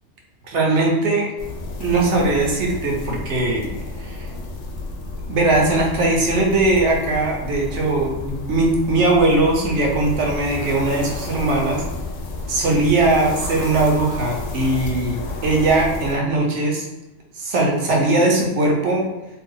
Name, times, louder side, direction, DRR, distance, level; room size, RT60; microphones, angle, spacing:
voice 1, 0.5-1.3 1.8-3.7 4.0-4.3 5.3-11.8 12.5-16.9 17.3-19.1, right 2 dB, 65° right, -1 dB, 1.0 m, -20 dB
sound 1, 1.4-16.2, left 2 dB, 70° left, 0.9 m, -31 dB
2.7 x 2.3 x 3.7 m, 0.99 s
omnidirectional pair, 1.3 m